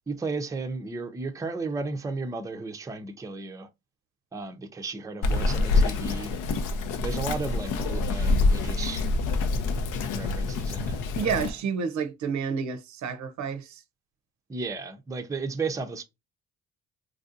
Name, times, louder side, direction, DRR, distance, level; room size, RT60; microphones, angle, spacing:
voice 1, 0.1-3.7 4.3-6.4 7.0-9.0 10.1-11.0 14.5-16.0, right 3 dB, 10° right, 0.4 m, -34 dB
Bird vocalization bird call bird song, 5.2-11.5, left 3 dB, 85° left, 0.6 m, -26 dB
voice 2, 11.2-13.8, right 6 dB, 70° right, 0.6 m, -30 dB
3.3 x 2.5 x 2.5 m
cardioid pair, 90°, 30 cm